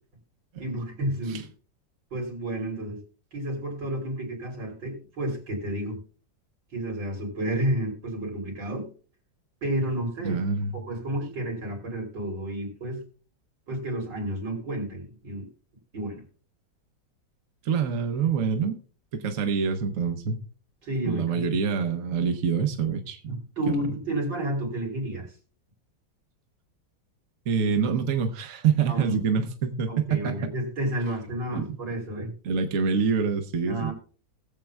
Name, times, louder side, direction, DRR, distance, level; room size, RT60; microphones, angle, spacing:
voice 1, 0.6-1.4 2.1-3.0 3.3-6.0 6.7-8.9 9.6-10.4 10.7-13.0 13.7-15.5 15.9-16.2 20.8-21.6 23.3-25.3 28.9-29.2 29.9-32.3 33.7-33.9, right 1 dB, 90° right, 0 dB, 3.9 m, -31 dB
voice 2, 10.2-10.8 17.6-18.7 19.1-20.4 21.1-23.4 27.5-30.5 31.5-31.8 32.4-33.9, right 6 dB, 55° right, 6 dB, 1.3 m, -26 dB
21.0 x 7.5 x 2.3 m, 0.38 s
omnidirectional pair, 1.9 m